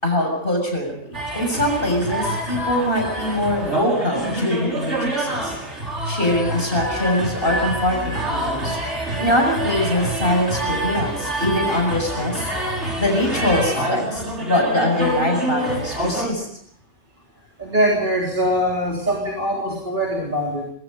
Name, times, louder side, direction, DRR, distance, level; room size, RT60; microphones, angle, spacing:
voice 1, 0.0-5.6 6.0-8.8 9.2-12.5 12.9-16.5, left 1 dB, 45° left, 2 dB, 6.9 m, -23 dB
sound 1, 1.1-16.3, right 1 dB, 65° right, 5.7 m, -26 dB
voice 2, 17.6-20.7, equal, 40° right, -2 dB, 3.9 m, -22 dB
26.0 x 22.5 x 5.3 m, 0.65 s
omnidirectional pair, 1.3 m